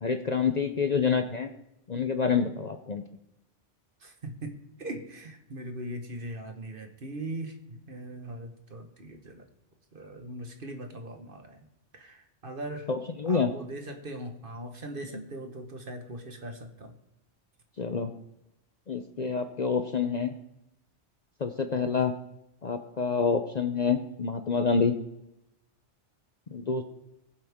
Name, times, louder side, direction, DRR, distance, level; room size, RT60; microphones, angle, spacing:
voice 1, 0.0-1.5 1.9-3.0 12.9-13.5 17.8-18.1 18.9-20.4 21.4-22.1 22.6-24.9 26.5-26.8, left 5 dB, 45° left, 8 dB, 0.7 m, -27 dB
voice 2, 4.0-9.5 9.9-11.7 11.9-12.9 13.2-17.0, right 1 dB, 50° right, 6 dB, 1.5 m, -40 dB
20.5 x 7.5 x 3.6 m, 0.86 s
omnidirectional pair, 1.2 m